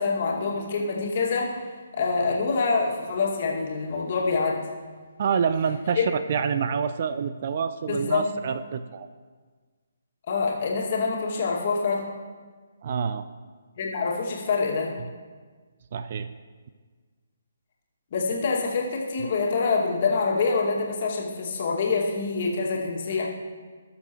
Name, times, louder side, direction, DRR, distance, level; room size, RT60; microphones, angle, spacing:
voice 1, 0.0-4.6 6.0-6.1 7.9-8.2 10.3-12.0 13.8-14.9 18.1-23.3, left 4 dB, 40° left, -2 dB, 2.1 m, -26 dB
voice 2, 5.2-9.1 12.8-13.2 15.9-16.3, right 6 dB, 40° right, 11 dB, 0.4 m, -27 dB
18.5 x 7.0 x 3.1 m, 1.5 s
figure-of-eight pair, 135°, 0 cm